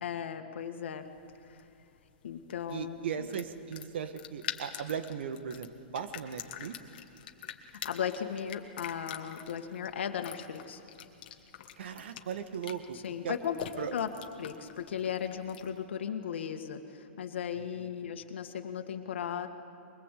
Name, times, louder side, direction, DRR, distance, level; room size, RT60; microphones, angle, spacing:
voice 1, 0.0-1.1 1.5-1.7 2.2-3.3 7.8-10.8 13.0-13.6 13.9-14.1 14.4-19.5, left 8 dB, 75° left, 5 dB, 1.8 m, -36 dB
sound 1, 1.0-15.8, left 10 dB, 50° left, 1.5 m, -46 dB
voice 2, 2.7-6.8 11.8-13.0 13.2-13.4 13.8-13.9, right 7 dB, 70° right, 9 dB, 1.6 m, -37 dB
23.0 x 20.5 x 8.4 m, 2.7 s
hypercardioid pair, 165°, 6 cm